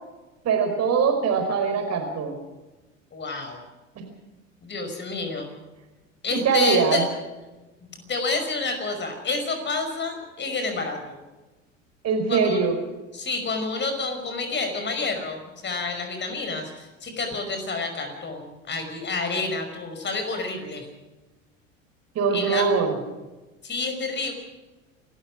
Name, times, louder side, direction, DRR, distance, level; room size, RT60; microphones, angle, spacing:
voice 1, 0.4-2.4 3.9-4.0 6.3-7.0 12.0-12.8 22.1-22.9, right 5 dB, 40° right, 5 dB, 5.0 m, -22 dB
voice 2, 3.1-3.6 4.6-5.6 6.2-7.1 8.1-11.2 12.3-12.7 13.1-20.9 22.3-22.7 23.6-24.3, left 3 dB, 25° left, 6 dB, 5.5 m, -29 dB
28.5 x 14.5 x 6.2 m, 1.1 s
figure-of-eight pair, 75°, 40 cm